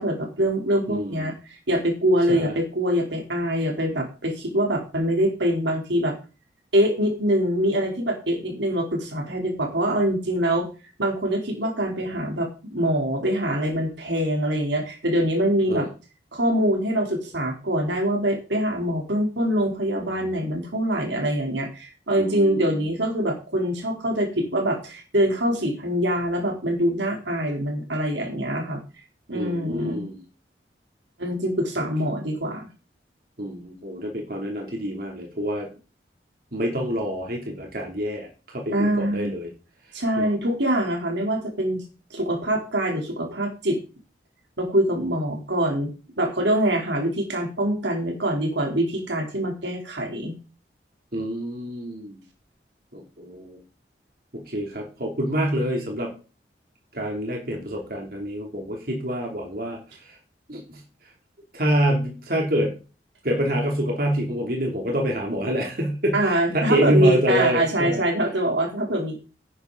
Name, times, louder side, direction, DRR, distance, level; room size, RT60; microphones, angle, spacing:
voice 1, 0.0-6.2 6.7-10.7 11.0-15.9 16.3-28.8 29.3-30.0 31.2-32.7 38.7-39.3 39.9-41.8 42.1-43.8 44.6-45.9 46.2-50.3 66.1-69.2, right 1 dB, 90° right, 2 dB, 3.7 m, -24 dB
voice 2, 0.9-1.3 2.3-2.5 15.7-15.9 22.2-22.9 29.3-30.2 33.4-35.7 36.5-39.5 40.2-40.3 51.1-52.2 52.9-53.6 54.3-56.1 56.9-59.8 60.5-60.8 61.5-62.7 63.2-68.0, equal, 55° right, 0 dB, 3.1 m, -26 dB
11.0 x 9.7 x 4.0 m, 0.34 s
head